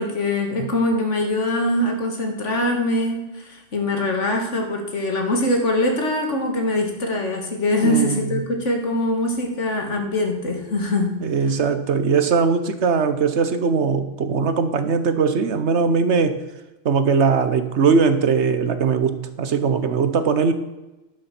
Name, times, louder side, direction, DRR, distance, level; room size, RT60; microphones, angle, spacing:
voice 1, 0.0-11.1, left 1 dB, 85° left, 3 dB, 2.3 m, -23 dB
voice 2, 7.8-8.4 11.2-16.4 16.8-20.5, right 5 dB, 70° right, 10 dB, 1.3 m, -20 dB
11.0 x 6.9 x 6.0 m, 1.0 s
omnidirectional pair, 1.2 m